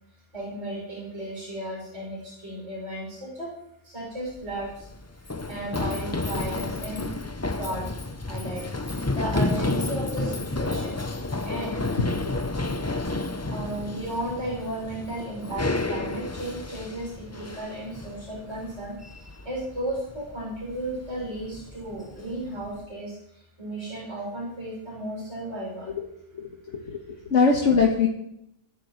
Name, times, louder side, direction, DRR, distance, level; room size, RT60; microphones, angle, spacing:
voice 1, 0.3-3.5 3.8-4.9 5.4-7.1 7.5-11.0 11.4-11.8 12.9-19.0 19.4-25.9, right 1 dB, 80° right, -4 dB, 7.1 m, -35 dB
Run, 4.3-22.8, left 2 dB, 20° left, 0.5 m, -31 dB
voice 2, 26.3-28.1, left 5 dB, 85° left, 0 dB, 1.8 m, -23 dB
27.0 x 12.0 x 3.2 m, 0.79 s
omnidirectional pair, 1.2 m